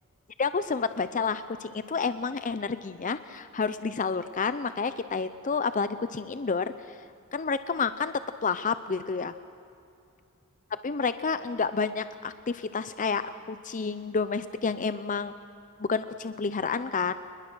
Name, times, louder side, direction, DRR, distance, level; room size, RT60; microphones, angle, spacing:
voice 1, 0.4-6.7 7.3-8.1 8.4-9.3 10.8-15.3 15.8-17.1, left 5 dB, 35° left, 12 dB, 0.6 m, -29 dB
28.5 x 20.5 x 6.2 m, 2.6 s
head